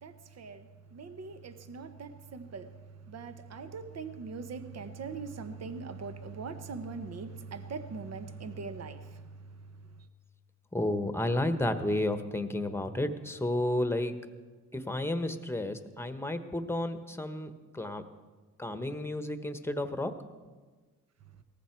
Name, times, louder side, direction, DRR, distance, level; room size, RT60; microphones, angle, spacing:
voice 1, 0.0-9.6 10.0-10.1, right 4 dB, 50° right, 10 dB, 1.1 m, -41 dB
voice 2, 10.7-14.2 14.7-18.0 18.6-20.1, left 1 dB, 5° left, 9 dB, 1.2 m, -32 dB
18.5 x 14.5 x 4.6 m, 1.4 s
cardioid pair, 85°, 32 cm